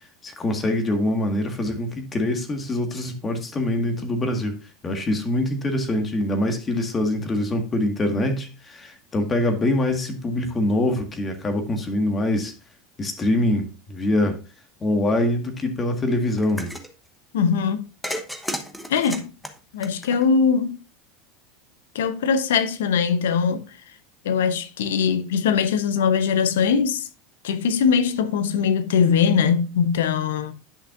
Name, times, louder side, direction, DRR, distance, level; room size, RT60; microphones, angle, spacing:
voice 1, 0.2-4.6 4.8-12.5 13.0-14.4 14.8-16.7, left 1 dB, 25° left, 1.7 m, -24 dB
sound 1, 16.4-16.9 18.0-20.5, equal, 5° left, 1.0 m, -33 dB
voice 2, 17.3-17.9 18.9-19.3 19.7-20.8 21.9-23.6 24.2-27.1 27.4-30.5, left 6 dB, 85° left, 0.8 m, -21 dB
10.5 x 6.0 x 2.5 m
supercardioid pair, 110°, 0 cm